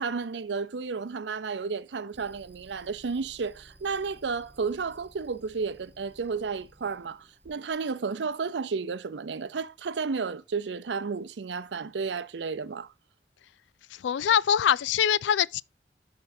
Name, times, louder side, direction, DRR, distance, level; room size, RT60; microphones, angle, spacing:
voice 1, 0.0-12.9, right 5 dB, 85° right, 0.5 m, -32 dB
sound 1, 2.1-7.7, right 1 dB, 10° right, 2.4 m, -56 dB
voice 2, 13.9-15.6, left 9 dB, 90° left, 0.3 m, -24 dB
12.5 x 4.6 x 2.7 m
head